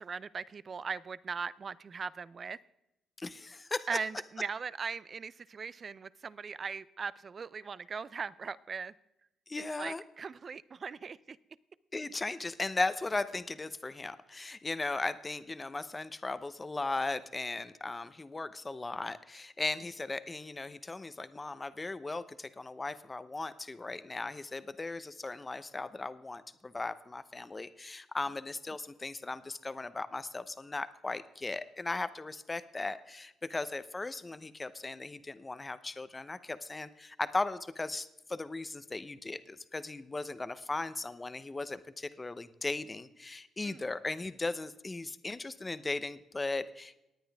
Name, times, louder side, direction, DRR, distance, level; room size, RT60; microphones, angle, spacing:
voice 1, 0.0-2.6 3.9-8.9 9.8-11.4 43.6-43.8, right 5 dB, 40° right, 18 dB, 0.5 m, -39 dB
voice 2, 3.2-3.9 9.5-10.0 11.9-47.0, left 3 dB, 20° left, 13 dB, 0.8 m, -37 dB
18.0 x 9.9 x 3.5 m, 0.89 s
cardioid pair, 90°, 0 cm